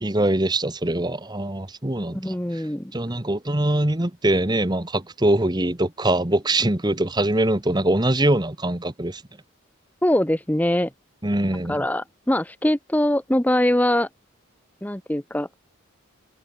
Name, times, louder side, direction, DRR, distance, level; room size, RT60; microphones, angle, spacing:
voice 1, 0.0-2.6 2.9-9.2 11.2-11.8, right 1 dB, 20° right, 1.2 m, -23 dB
voice 2, 2.1-2.9 10.0-10.9 11.7-14.1 14.8-15.5, left 1 dB, 10° left, 0.7 m, -22 dB
head